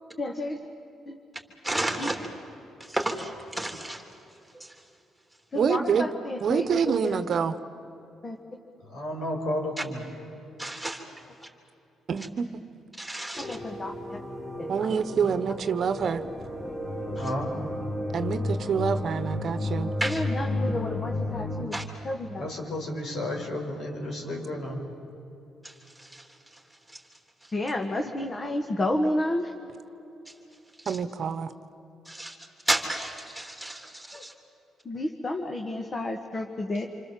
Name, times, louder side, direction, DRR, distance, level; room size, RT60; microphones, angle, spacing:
voice 1, 0.2-0.6 1.1-1.2 2.0-2.1 5.5-7.2 8.2-8.4 13.4-14.2 14.6-14.9 20.0-21.8 22.0-22.5 27.5-29.5 34.9-36.9, left 1 dB, 35° left, 4 dB, 1.8 m, -31 dB
voice 2, 1.6-2.3 2.8-4.0 4.5-4.8 9.8-9.9 10.6-11.5 12.2-12.3 12.9-13.6 17.2-17.3 20.0-20.2 21.7-21.8 25.6-26.6 26.9-27.0 27.4-27.5 30.2-30.3 30.8-31.0 32.0-32.4 32.6-34.3, right 1 dB, 5° right, 3 dB, 3.4 m, -33 dB
voice 3, 5.5-6.1 6.4-7.5 12.1-12.5 14.7-16.2 18.1-19.9 30.9-31.5, right 6 dB, 55° right, 11 dB, 1.1 m, -26 dB
voice 4, 8.8-10.0 17.1-17.5 22.4-24.8 34.1-34.2, left 1 dB, 65° left, 1 dB, 5.8 m, -32 dB
sound 1, 13.3-21.6, left 1 dB, 15° left, 3.7 m, -32 dB
28.0 x 25.0 x 7.6 m, 2.9 s
cardioid pair, 90°, 0 cm